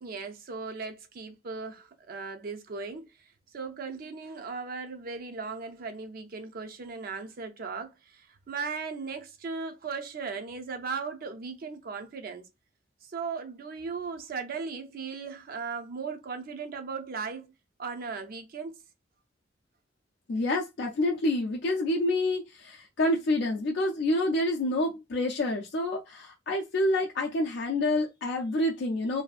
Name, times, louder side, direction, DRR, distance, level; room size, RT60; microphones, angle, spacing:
voice 1, 0.0-3.1 3.5-12.5 13.0-17.5 17.8-18.7, right 5 dB, 50° right, 0.4 m, -37 dB
voice 2, 20.3-29.2, left 1 dB, 60° left, 0.4 m, -28 dB
2.6 x 2.3 x 2.4 m
head